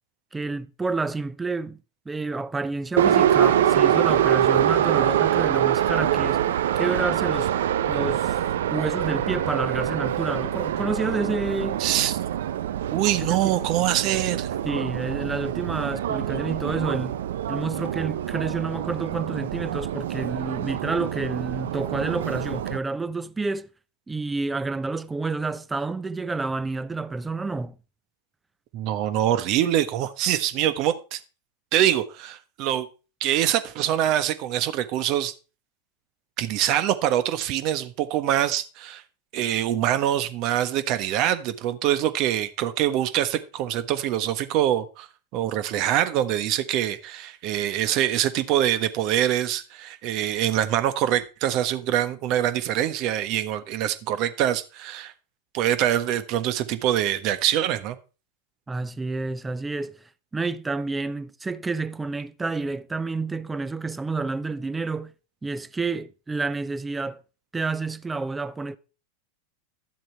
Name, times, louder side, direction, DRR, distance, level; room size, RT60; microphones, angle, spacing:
voice 1, 0.3-1.8 2.1-6.4 6.8-7.5 7.9-8.4 8.7-11.8 13.2-13.5 14.6-17.2 17.5-23.7 24.1-27.8 58.7-60.0 60.3-65.1 65.4-67.2 67.5-68.8, right 3 dB, 15° right, 0.7 m, -29 dB
Subway metro underground, 3.0-22.8, right 10 dB, 70° right, 0.6 m, -25 dB
voice 2, 11.8-12.2 12.9-14.5 28.7-31.2 31.7-32.9 33.2-35.3 36.4-39.0 39.3-45.1 45.3-55.1 55.5-58.0, right 11 dB, 50° right, 1.3 m, -24 dB
12.0 x 7.6 x 4.6 m
hypercardioid pair, 95°, 0 cm